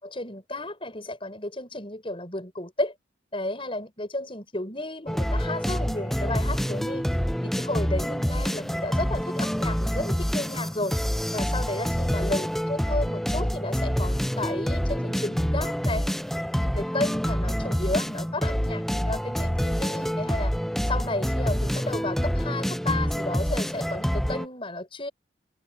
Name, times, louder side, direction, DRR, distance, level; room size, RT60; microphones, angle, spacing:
voice 1, 0.0-2.9 3.3-11.0 11.3-16.1 16.4-20.5 20.9-25.1, left 2 dB, 30° left, 7.4 m, -33 dB
sound 1, 5.1-24.5, equal, ahead, 0.4 m, -27 dB
head